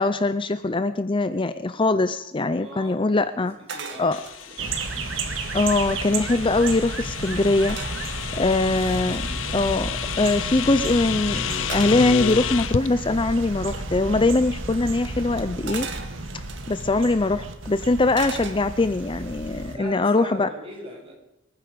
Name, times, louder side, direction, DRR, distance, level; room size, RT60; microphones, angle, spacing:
voice 1, 0.0-3.5 4.0-4.2 5.5-7.8 8.4-15.9 16.7-20.5, left 2 dB, 25° left, 12 dB, 0.6 m, -22 dB
voice 2, 2.5-3.0 3.3-3.5 3.7-4.8 8.3-8.6 19.7-21.1, right 1 dB, 30° right, -2 dB, 7.3 m, -40 dB
sound 1, 3.7-5.0 5.6-5.7 5.9-6.5 7.7-9.2 11.7-12.8 13.7-13.9 15.7-16.9 18.1-19.0 19.4-19.8, right 5 dB, 65° right, 2.3 m, -38 dB
sound 2, 4.1-12.9, left 8 dB, 85° left, 0.6 m, -31 dB
sound 3, 4.6-19.8, right 3 dB, 80° right, 1.9 m, -33 dB
26.0 x 9.8 x 5.2 m, 0.88 s
head